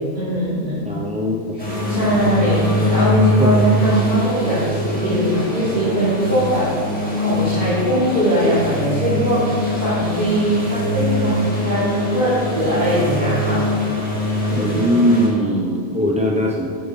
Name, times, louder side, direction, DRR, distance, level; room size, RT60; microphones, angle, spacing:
voice 1, 0.1-0.8 1.9-6.7 7.2-9.4 9.7-13.6 14.5-15.0, right 1 dB, 40° right, -12 dB, 3.2 m, -20 dB
voice 2, 0.8-1.4 3.4-3.5 14.6-16.7, equal, 10° right, -3 dB, 0.5 m, -20 dB
sound 1, 1.6-15.3, left 1 dB, 5° left, 2.4 m, -22 dB
9.1 x 7.9 x 5.2 m, 2.2 s
omnidirectional pair, 1.2 m